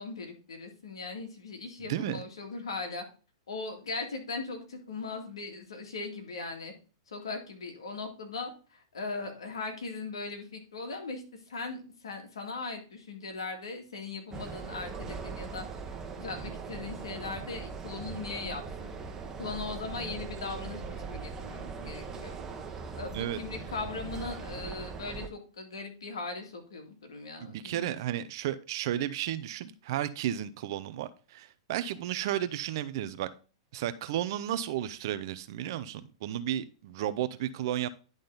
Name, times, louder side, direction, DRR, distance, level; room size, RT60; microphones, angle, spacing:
voice 1, 0.0-3.0 3.5-6.7 7.1-15.6 16.2-18.9 19.3-22.4 22.9-27.9, left 3 dB, 80° left, 2.1 m, -39 dB
voice 2, 1.9-2.2 23.1-23.4 27.4-33.3 33.7-37.9, right 11 dB, 60° right, 0.6 m, -33 dB
sound 1, 14.3-25.3, right 5 dB, 20° right, 1.1 m, -40 dB
10.5 x 3.8 x 3.9 m
hypercardioid pair, 115°, 3 cm